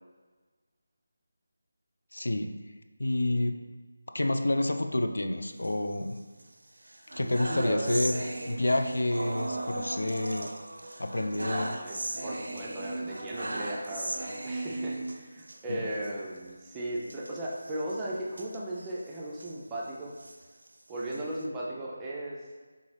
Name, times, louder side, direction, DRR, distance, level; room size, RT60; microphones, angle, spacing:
voice 1, 2.1-2.5 3.0-3.6 4.1-6.2 7.1-10.5 11.0-11.8 15.7-15.8, left 1 dB, 80° left, 6 dB, 0.4 m, -29 dB
sound 1, 5.5-6.4 6.8-15.6 16.0-16.1 16.4-16.5 17.0-19.6 20.0-21.4, right 2 dB, 75° right, 0.5 m, -38 dB
voice 2, 7.5-8.1 11.5-20.1 20.9-22.4, right 1 dB, 10° right, -5 dB, 0.5 m, -36 dB
3.9 x 3.6 x 3.3 m, 1.3 s
figure-of-eight pair, 165°, 0 cm